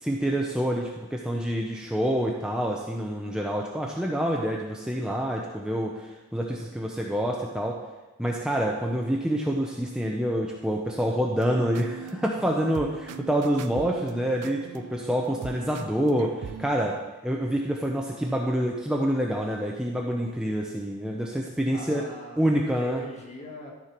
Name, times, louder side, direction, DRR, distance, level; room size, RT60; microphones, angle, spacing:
voice 1, 0.0-7.8 8.2-17.0 17.2-22.0 22.4-23.0, equal, 5° right, -1 dB, 0.6 m, -27 dB
sound 1, 11.4-16.7, right 7 dB, 90° right, 0.5 m, -41 dB
voice 2, 21.7-23.7, left 1 dB, 30° left, -1 dB, 1.9 m, -42 dB
13.0 x 5.6 x 4.5 m, 1.1 s
head